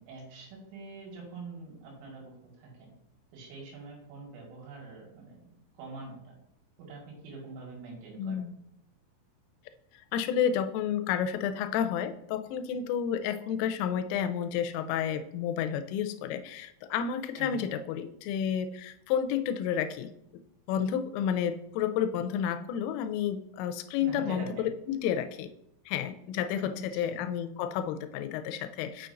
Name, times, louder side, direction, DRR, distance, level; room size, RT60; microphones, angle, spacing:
voice 1, 0.0-2.9 3.3-6.3 6.8-8.4 17.4-17.7 24.0-24.7 26.6-27.2, right 3 dB, 85° right, -2 dB, 4.3 m, -45 dB
voice 2, 8.2-8.6 10.1-20.1 20.7-24.5 24.9-25.5 25.9-29.1, left 8 dB, 90° left, 10 dB, 3.1 m, -31 dB
6.9 x 6.3 x 2.5 m, 0.80 s
omnidirectional pair, 5.6 m